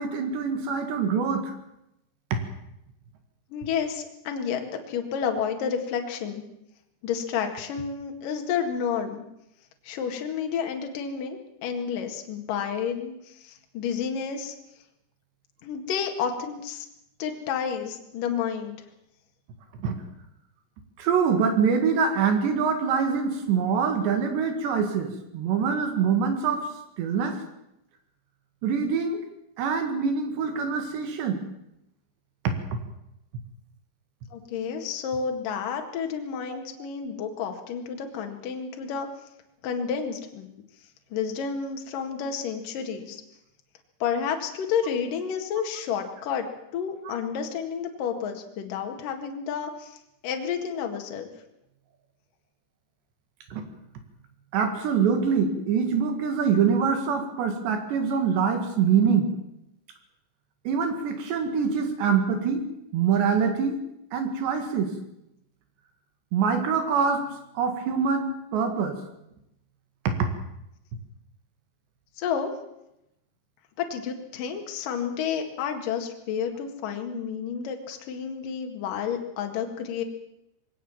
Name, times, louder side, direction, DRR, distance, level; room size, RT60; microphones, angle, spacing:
voice 1, 0.0-1.5 2.3-2.4 19.8-20.0 21.0-26.7 27.0-27.4 28.6-29.2 29.6-31.4 32.5-32.8 36.5-36.6 47.1-47.2 53.5-53.6 54.5-59.3 60.7-62.7 62.9-63.8 64.1-64.9 66.3-67.3 67.6-69.0 70.1-70.3, right 6 dB, 70° right, 6 dB, 4.1 m, -24 dB
voice 2, 3.5-6.4 7.0-9.2 9.8-14.5 15.6-16.9 17.2-18.8 34.3-39.1 39.6-40.5 41.1-43.2 44.0-46.5 46.7-50.0 50.2-51.3 72.2-72.5 73.8-80.0, left 7 dB, 55° left, 4 dB, 3.1 m, -30 dB
22.0 x 17.5 x 7.3 m, 0.84 s
omnidirectional pair, 5.4 m